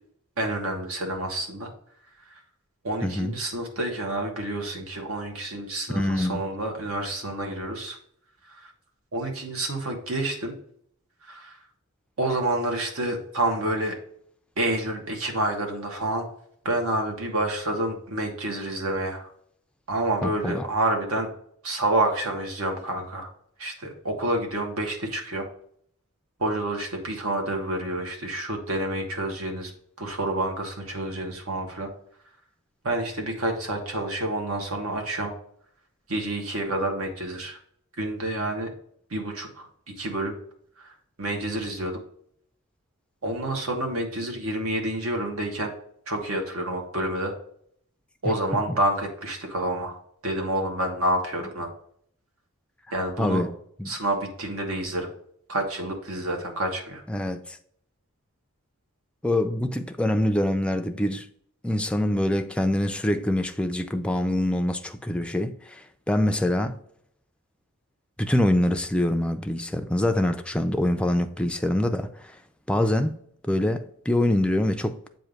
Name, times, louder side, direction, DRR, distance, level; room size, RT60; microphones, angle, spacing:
voice 1, 0.4-1.7 2.3-2.4 2.8-8.0 8.5-8.7 9.1-10.5 11.2-11.6 12.2-14.0 14.6-16.3 16.6-19.3 19.9-21.3 21.6-23.3 23.6-25.5 26.4-29.7 30.0-31.9 32.8-35.3 36.1-37.6 38.0-38.7 39.1-40.3 40.8-42.0 43.2-45.7 46.1-47.3 48.2-50.0 50.2-51.7 52.9-53.4 53.8-55.1 55.5-57.0, right 1 dB, 75° right, 1.4 m, -28 dB
voice 2, 3.0-3.3 5.9-6.4 20.2-20.7 53.2-53.5 53.8-53.9 57.1-57.6 59.2-61.3 61.6-66.8 68.2-72.3 72.7-73.2 73.4-75.0, left 1 dB, 5° left, 0.4 m, -25 dB
7.6 x 2.6 x 5.0 m
head